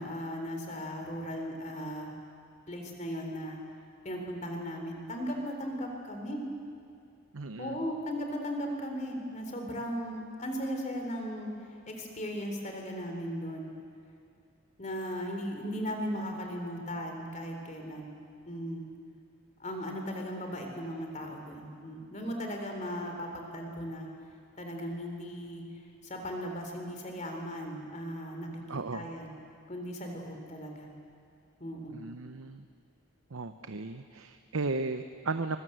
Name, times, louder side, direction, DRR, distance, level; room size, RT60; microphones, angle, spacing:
voice 1, 0.0-2.1 2.7-3.6 4.0-6.4 7.6-11.5 11.9-13.7 14.8-18.1 18.5-18.8 19.6-24.1 24.6-25.6 26.0-29.3 29.7-30.9 31.6-32.0, equal, 35° left, 3 dB, 3.7 m, -37 dB
voice 2, 7.3-7.8 28.7-29.1 31.9-32.6 33.3-35.6, right 3 dB, 80° right, 9 dB, 0.8 m, -35 dB
23.5 x 22.5 x 7.9 m, 2.4 s
head